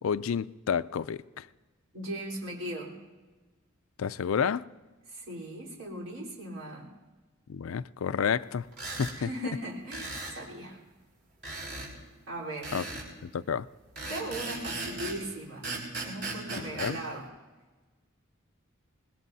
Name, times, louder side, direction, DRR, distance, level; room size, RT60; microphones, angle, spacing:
voice 1, 0.0-1.5 4.0-4.7 7.5-8.7 9.0-9.5 12.7-12.8 13.2-13.7 16.8-17.0, left 7 dB, 75° left, 0.4 m, -30 dB
voice 2, 1.9-3.0 5.1-6.9 9.1-10.8 12.3-12.7 14.1-15.7 16.0-17.3, right 1 dB, 75° right, 3.8 m, -38 dB
sound 1, 8.7-9.2 9.9-10.4 11.4-11.9 12.6-13.1 14.0-15.2 15.6-17.0, right 3 dB, 55° right, 5.0 m, -37 dB
25.0 x 20.5 x 2.7 m
head